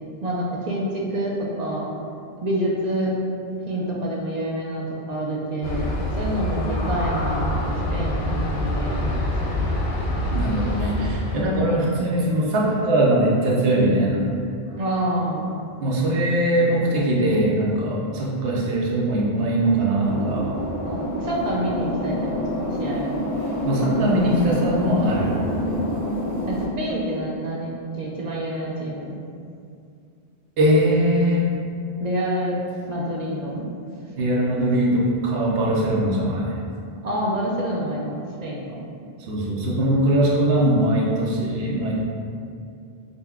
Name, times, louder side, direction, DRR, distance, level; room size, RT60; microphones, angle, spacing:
voice 1, 0.2-1.9 2.4-3.1 3.7-9.7 11.5-11.8 14.8-15.5 20.8-23.2 26.5-29.2 32.0-32.6 32.9-33.7 37.0-38.1 38.4-38.8, right 1 dB, 55° right, -4 dB, 0.5 m, -27 dB
Aircraft, 5.6-11.4, left 1 dB, 60° left, 0.7 m, -25 dB
voice 2, 10.3-14.2 14.7-14.8 15.8-20.5 23.6-25.4 30.6-31.5 34.1-36.5 39.2-41.9, right 1 dB, 75° right, -4 dB, 0.8 m, -21 dB
sound 1, 20.0-26.6, equal, 15° left, 0.8 m, -27 dB
5.2 x 2.1 x 2.3 m, 2.4 s
omnidirectional pair, 1.0 m